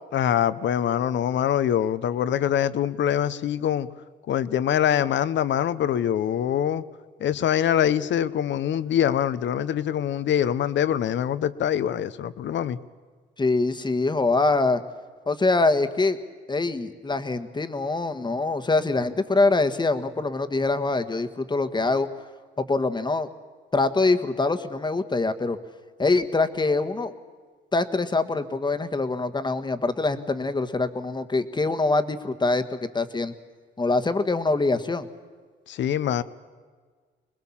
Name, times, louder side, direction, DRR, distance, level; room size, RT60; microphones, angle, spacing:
voice 1, 0.1-3.9 4.3-6.8 7.2-12.8 35.7-36.2, left 10 dB, 65° left, 15 dB, 0.9 m, -24 dB
voice 2, 13.4-14.8 15.3-16.2 16.5-22.1 22.6-23.3 23.7-25.6 26.0-27.1 27.7-33.3 33.8-35.1, left 3 dB, 20° left, 10 dB, 1.5 m, -24 dB
25.0 x 20.5 x 7.3 m, 1.5 s
cardioid pair, 90°, 20 cm